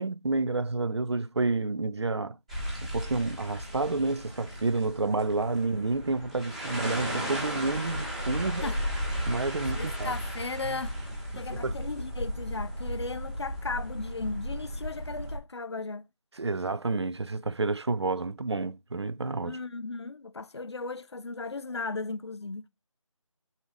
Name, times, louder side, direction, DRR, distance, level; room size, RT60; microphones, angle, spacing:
voice 1, 0.0-2.4 2.8-8.7 9.3-10.1 11.3-11.8 16.4-19.6, right 3 dB, 55° right, 0.5 m, -29 dB
sound 1, 2.5-15.4, equal, 10° right, 1.1 m, -35 dB
voice 2, 9.7-11.0 11.4-16.0 19.4-22.7, left 3 dB, 55° left, 0.5 m, -36 dB
5.1 x 4.1 x 5.9 m
figure-of-eight pair, 180°, 17 cm